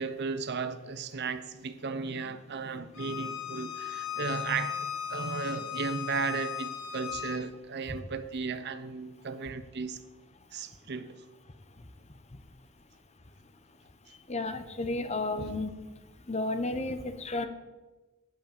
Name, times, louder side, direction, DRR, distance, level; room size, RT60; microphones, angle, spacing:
voice 1, 0.0-10.0 10.5-11.2, right 4 dB, 55° right, 0.7 m, -35 dB
Bowed string instrument, 2.9-7.4, left 9 dB, 85° left, 1.4 m, -37 dB
voice 2, 14.3-15.7 16.3-17.5, left 2 dB, 30° left, 0.9 m, -32 dB
10.5 x 8.5 x 7.0 m
head